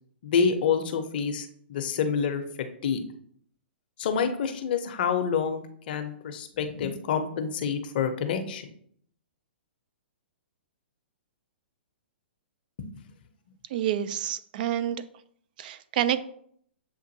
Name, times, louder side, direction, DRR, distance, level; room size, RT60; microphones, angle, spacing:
voice 1, 0.2-2.4 2.8-3.0 4.0-8.7 12.8-12.9, left 6 dB, 55° left, 7 dB, 0.6 m, -27 dB
voice 2, 13.7-15.0 15.6-16.2, right 11 dB, 50° right, 13 dB, 0.3 m, -28 dB
7.2 x 2.5 x 2.6 m, 0.64 s
figure-of-eight pair, 115°, 6 cm